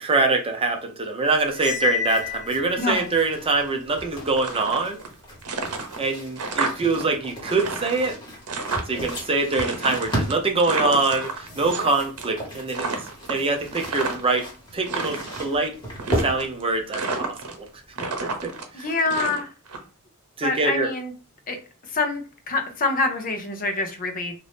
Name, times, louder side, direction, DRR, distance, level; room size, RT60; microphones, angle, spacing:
voice 1, 0.0-5.0 6.0-8.2 8.9-12.9 13.3-15.7 16.2-17.7 18.2-18.9 20.4-20.9, right 3 dB, 25° right, 0.5 m, -24 dB
Cymbal, 1.5-3.0, left 8 dB, 75° left, 1.0 m, -28 dB
sound 1, 2.1-18.6, right 1 dB, 20° left, 1.5 m, -36 dB
voice 2, 2.8-3.1 18.7-19.5 20.4-21.1 21.5-21.6 21.9-24.3, left 3 dB, 40° left, 0.6 m, -26 dB
sound 2, 4.2-5.1 5.4-7.0 7.3-9.1 9.5-11.9 12.2-12.5 12.7-14.4 14.8-15.5 16.0-16.6 16.9-17.7 17.9-19.8, right 3 dB, 85° right, 0.7 m, -30 dB
2.6 x 2.5 x 3.4 m
head